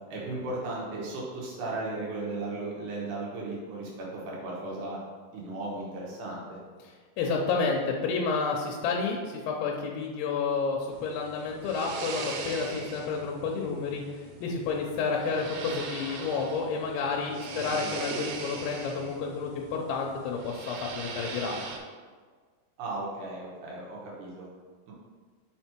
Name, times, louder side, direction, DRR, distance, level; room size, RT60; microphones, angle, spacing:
voice 1, 0.1-5.0 5.3-6.6 17.5-18.0 22.8-24.5 24.9-25.0, right 2 dB, 70° right, -4 dB, 2.0 m, -36 dB
voice 2, 7.2-14.0 14.4-21.6, left 4 dB, 85° left, 0 dB, 3.0 m, -30 dB
sound 1, 10.9-21.8, right 4 dB, 85° right, 3.2 m, -40 dB
6.2 x 4.4 x 4.4 m, 1.5 s
omnidirectional pair, 5.2 m